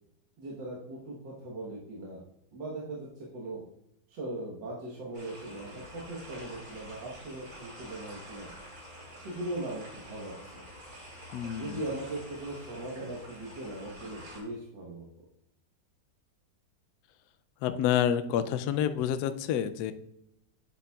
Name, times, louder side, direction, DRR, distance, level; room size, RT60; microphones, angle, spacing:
voice 1, 0.4-2.2 2.5-3.6 4.1-8.5 9.2-10.3 11.5-15.1, right 1 dB, 80° right, -4 dB, 1.9 m, -39 dB
sound 1, 5.1-14.4, equal, 55° right, 3.5 m, -48 dB
voice 2, 11.3-11.8 17.6-19.9, left 9 dB, 75° left, 10 dB, 1.0 m, -28 dB
9.9 x 6.8 x 2.3 m, 0.78 s
omnidirectional pair, 1.9 m